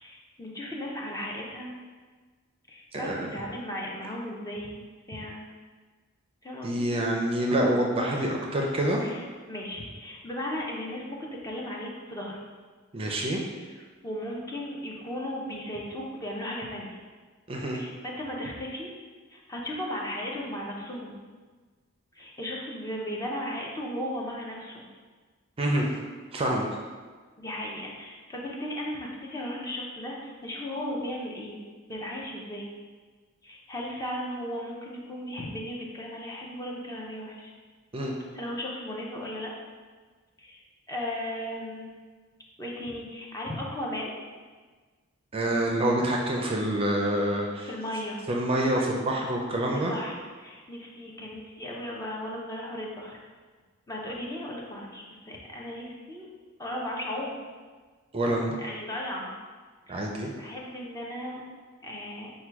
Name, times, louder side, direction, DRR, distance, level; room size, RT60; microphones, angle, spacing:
voice 1, 0.0-1.7 2.7-5.4 6.4-6.9 9.0-12.4 13.5-13.8 14.0-17.0 17.7-18.9 19.3-21.2 22.1-24.9 27.4-31.6 31.9-32.7 33.4-37.5 38.3-39.5 40.4-40.6 40.9-42.0 42.6-44.2 47.7-48.2 49.7-53.2 53.9-56.3 56.6-57.4 58.6-59.3 59.9-60.0 60.4-61.4 61.8-62.3, left 1 dB, 15° left, -2 dB, 0.6 m, -36 dB
voice 2, 2.9-3.3 6.6-9.0 12.9-13.4 17.5-17.8 25.6-25.9 26.3-26.6 37.9-38.1 45.3-47.7 48.3-49.9 58.1-58.6 59.9-60.3, right 1 dB, 30° right, 0 dB, 0.5 m, -26 dB
4.5 x 2.2 x 4.6 m, 1.4 s
head